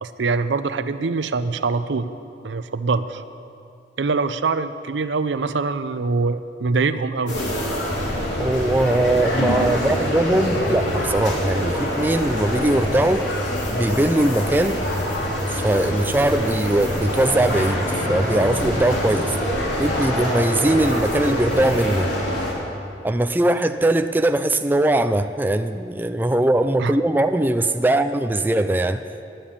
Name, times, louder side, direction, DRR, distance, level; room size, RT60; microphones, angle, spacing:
voice 1, 0.0-2.1 2.4-3.2 4.0-7.4 26.8-26.9, right 4 dB, 80° right, 12 dB, 0.5 m, -23 dB
sound 1, 7.3-22.5, equal, 80° left, 2.7 m, -25 dB
voice 2, 8.4-13.3 13.7-14.8 15.5-17.8 18.1-19.3 19.8-22.1 23.0-29.0, right 1 dB, 10° right, 8 dB, 0.3 m, -20 dB
11.5 x 9.1 x 8.6 m, 2.6 s
head